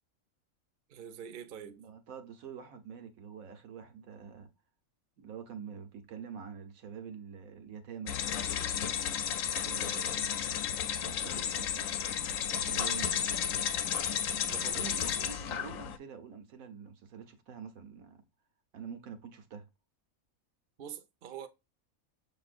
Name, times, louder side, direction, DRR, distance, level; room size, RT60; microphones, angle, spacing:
voice 1, 0.9-1.8 14.5-15.1 20.8-21.5, right 8 dB, 50° right, 0.7 m, -45 dB
voice 2, 1.8-4.5 5.2-8.3 9.6-10.5 11.1-11.9 12.5-13.3 14.6-18.2 18.7-19.7, right 7 dB, 80° right, 1.3 m, -46 dB
sound 1, 8.1-16.0, left 8 dB, 75° left, 1.0 m, -33 dB
6.8 x 3.0 x 2.5 m
omnidirectional pair, 1.4 m